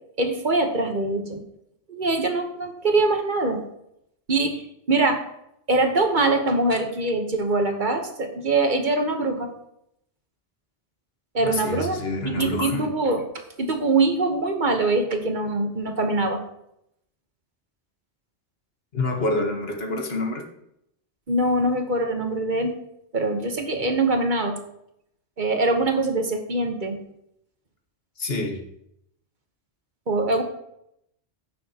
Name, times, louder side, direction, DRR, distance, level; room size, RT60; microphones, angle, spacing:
voice 1, 0.2-1.4 1.9-3.6 4.3-4.6 4.9-5.2 5.7-9.5 11.3-12.0 12.2-13.2 13.6-16.4 21.3-22.7 23.1-24.6 25.4-27.0 30.1-30.4, right 2 dB, 45° right, 5 dB, 1.2 m, -23 dB
voice 2, 11.4-12.9 18.9-20.4 28.2-28.6, left 2 dB, 60° left, 3 dB, 1.5 m, -27 dB
15.5 x 6.6 x 2.9 m, 0.78 s
omnidirectional pair, 1.2 m